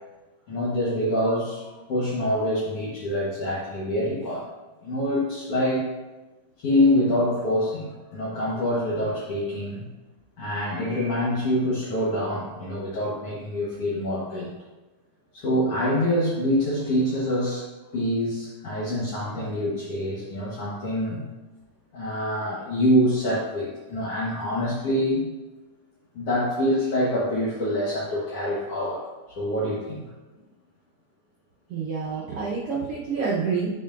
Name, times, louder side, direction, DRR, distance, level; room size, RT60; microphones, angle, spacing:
voice 1, 0.5-4.5 4.8-5.8 6.6-9.9 10.4-14.5 15.3-17.7 17.9-21.2 21.9-25.2 26.1-29.0 29.3-30.1, left 1 dB, 60° left, -6 dB, 1.8 m, -25 dB
voice 2, 31.7-33.7, right 5 dB, 75° right, -4 dB, 1.3 m, -28 dB
9.0 x 5.8 x 2.5 m, 1.1 s
omnidirectional pair, 3.8 m